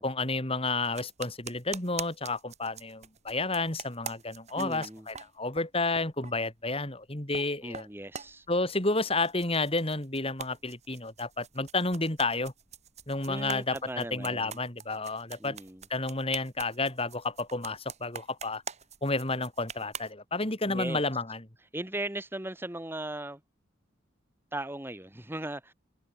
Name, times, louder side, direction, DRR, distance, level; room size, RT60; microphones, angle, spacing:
voice 1, 0.0-7.9 8.5-12.5 13.1-15.6 15.9-18.6 19.0-21.4, left 3 dB, 30° left, 4.0 m, -31 dB
sound 1, 0.8-5.7 5.9-6.4 7.0-7.5 7.7-9.0 9.2-20.1, right 6 dB, 35° right, 3.6 m, -44 dB
voice 2, 4.6-5.1 7.6-8.5 13.3-14.6 15.4-15.8 20.7-21.0 21.7-23.4 24.5-25.7, right 1 dB, 10° right, 1.3 m, -37 dB
open air
head